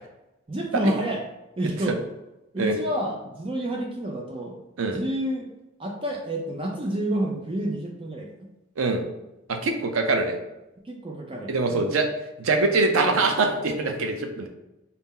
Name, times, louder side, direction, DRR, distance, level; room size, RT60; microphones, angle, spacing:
voice 1, 0.5-1.2 1.6-2.0 2.5-4.5 4.8-5.5 5.8-8.3 10.8-11.9, right 1 dB, 25° right, 1 dB, 0.4 m, -29 dB
voice 2, 9.5-10.4 11.5-12.1 12.4-14.5, right 3 dB, 85° right, 5 dB, 0.5 m, -23 dB
4.1 x 2.0 x 3.6 m, 0.96 s
head